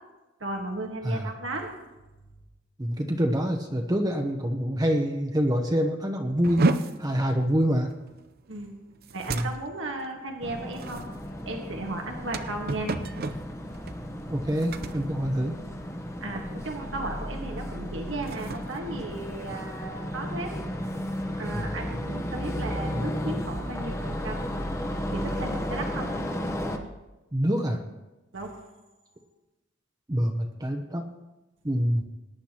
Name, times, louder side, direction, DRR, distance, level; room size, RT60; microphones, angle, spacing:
voice 1, 0.4-1.7 8.5-8.8 9.1-11.0 11.4-12.9 16.2-20.5 21.4-24.5 25.1-26.1 28.3-28.6, right 2 dB, 70° right, 2 dB, 1.5 m, -35 dB
voice 2, 2.8-6.7 7.0-7.9 9.3-9.5 14.3-15.6 21.5-21.6 27.3-27.8 30.1-31.0 31.6-32.0, equal, 20° right, 3 dB, 0.9 m, -26 dB
sound 1, 6.4-16.1 16.3-16.7 17.1-17.4 17.9-19.8, right 3 dB, 50° right, 0.6 m, -33 dB
sound 2, 10.4-26.8, equal, 15° left, 1.0 m, -34 dB
20.5 x 10.0 x 3.0 m, 1.1 s
head